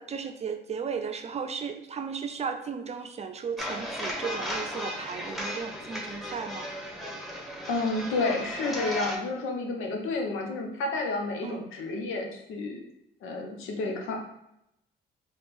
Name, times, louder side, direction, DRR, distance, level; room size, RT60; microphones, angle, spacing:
voice 1, 0.0-6.7 11.4-11.7, right 6 dB, 35° right, 7 dB, 0.5 m, -35 dB
sound 1, 3.6-9.2, equal, ahead, 1.0 m, -35 dB
voice 2, 7.7-12.8 13.2-14.2, left 3 dB, 85° left, 2 dB, 0.8 m, -30 dB
4.2 x 2.4 x 3.4 m, 0.81 s
cardioid pair, 90°, 20 cm